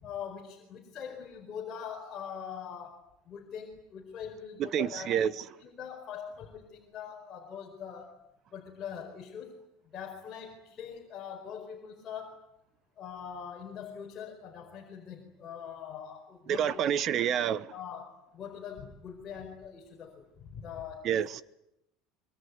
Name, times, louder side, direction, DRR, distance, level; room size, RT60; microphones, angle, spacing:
voice 1, 0.0-8.2 8.5-9.5 9.9-12.4 13.0-16.8 17.7-21.1, left 7 dB, 30° left, 4.8 m, -43 dB
voice 2, 4.6-5.4 16.5-17.7 21.0-21.4, right 9 dB, 40° right, 1.0 m, -28 dB
25.0 x 24.0 x 9.7 m
cardioid pair, 155°, 0 cm